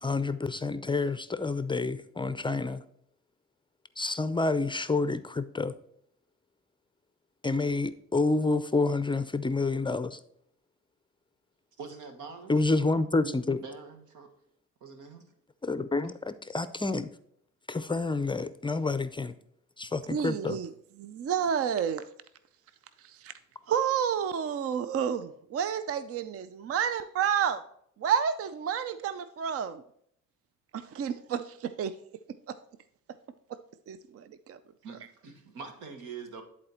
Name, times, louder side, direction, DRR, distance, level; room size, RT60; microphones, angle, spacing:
voice 1, 0.0-2.8 4.0-5.7 7.4-10.2 12.5-13.6 15.6-17.1 17.7-19.3 19.8-20.6, left 3 dB, 15° left, 0.5 m, -28 dB
voice 2, 11.8-12.5 13.6-14.3 14.8-15.2 34.8-36.4, right 5 dB, 90° right, 1.5 m, -44 dB
voice 3, 20.1-20.7 21.0-22.0 23.0-23.3 23.7-27.6 28.0-29.8 30.7-31.9 32.5-32.6 33.5-33.6 33.9-34.6, right 8 dB, 50° right, 0.5 m, -30 dB
10.5 x 4.2 x 4.3 m
cardioid pair, 90°, 30 cm